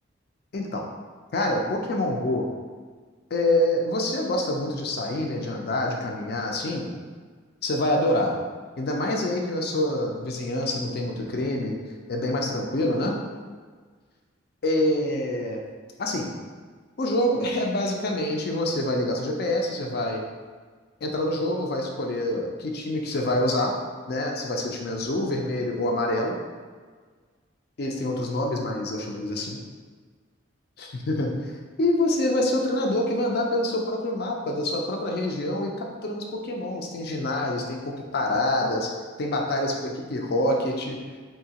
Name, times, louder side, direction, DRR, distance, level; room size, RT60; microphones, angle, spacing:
voice 1, 0.5-0.8 1.3-2.5 3.3-6.9 7.6-8.3 8.8-11.8 12.1-13.2 14.6-15.6 16.0-16.3 17.0-20.2 21.0-23.7 24.1-26.3 27.8-29.6 30.8-31.3 31.8-38.9 39.2-41.0, left 1 dB, 50° left, 1 dB, 0.4 m, -26 dB
4.6 x 2.8 x 2.8 m, 1.5 s
head